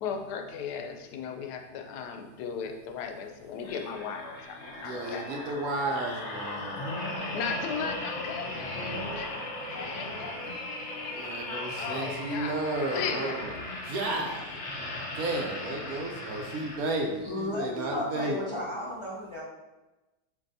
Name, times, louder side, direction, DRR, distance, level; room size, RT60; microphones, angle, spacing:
voice 1, 0.0-5.3 7.2-11.3 11.8-13.5, left 6 dB, 85° left, 4 dB, 1.2 m, -37 dB
sound 1, 3.6-17.2 17.7-17.9, left 1 dB, 55° left, 1.0 m, -37 dB
voice 2, 4.7-6.9 11.1-13.5 13.8-14.6 15.2-18.4, right 2 dB, 70° right, 2 dB, 1.1 m, -33 dB
voice 3, 17.2-19.4, left 1 dB, 30° left, -7 dB, 0.5 m, -34 dB
7.2 x 2.6 x 2.6 m, 1.1 s
omnidirectional pair, 1.7 m